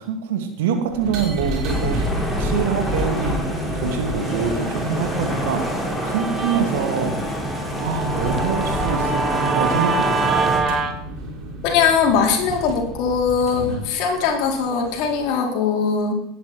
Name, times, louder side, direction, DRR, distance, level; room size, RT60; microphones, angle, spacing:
voice 1, 0.0-2.0 2.4-3.4 3.8-7.2 7.8-10.5 13.6-13.8, right 7 dB, 65° right, 6 dB, 2.5 m, -25 dB
sound 1, 0.9-15.3, equal, 45° right, 6.1 m, -30 dB
sound 2, 1.6-10.6, equal, 5° left, 5.4 m, -28 dB
Guitar, 5.4-10.9, right 4 dB, 30° right, 2.3 m, -26 dB
voice 2, 11.6-16.1, left 6 dB, 55° left, 1 dB, 4.3 m, -20 dB
19.5 x 10.0 x 4.6 m, 0.74 s
figure-of-eight pair, 75°, 0 cm